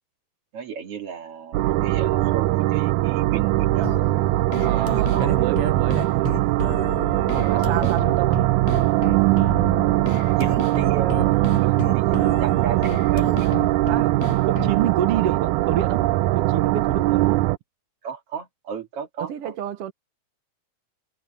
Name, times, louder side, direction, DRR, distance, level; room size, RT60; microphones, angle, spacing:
voice 1, 0.5-4.0 4.6-5.6 7.4-8.0 8.7-9.1 10.2-11.3 11.6-13.5 15.2-15.3 18.0-19.5, right 7 dB, 45° right, 3.0 m, -34 dB
sound 1, 1.5-17.6, right 17 dB, 85° right, 1.7 m, -21 dB
sound 2, 3.8-14.8, left 15 dB, 70° left, 1.9 m, -34 dB
voice 2, 4.6-6.1 7.3-8.4 11.6-11.9 13.9-14.1 14.4-16.0 16.3-17.4 19.2-19.9, right 11 dB, 65° right, 1.5 m, -28 dB
omnidirectional pair, 4.1 m